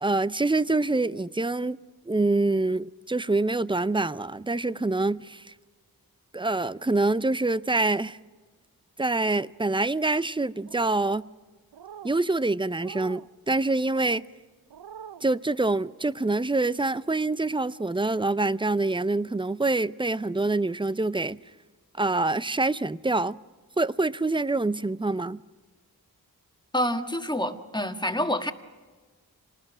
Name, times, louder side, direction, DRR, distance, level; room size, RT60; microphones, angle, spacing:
voice 1, 0.0-1.8 2.1-5.5 6.3-8.2 9.0-11.2 12.0-14.2 15.2-21.4 22.0-23.4 23.8-25.4, right 2 dB, 15° right, 0.5 m, -25 dB
sound 1, 10.7-11.2 11.7-12.2 12.7-13.3 13.9-14.2 14.7-15.2, right 8 dB, 80° right, 0.6 m, -44 dB
voice 2, 26.7-28.5, equal, 10° left, 1.7 m, -27 dB
26.0 x 19.5 x 6.2 m
cardioid pair, 45°, 37 cm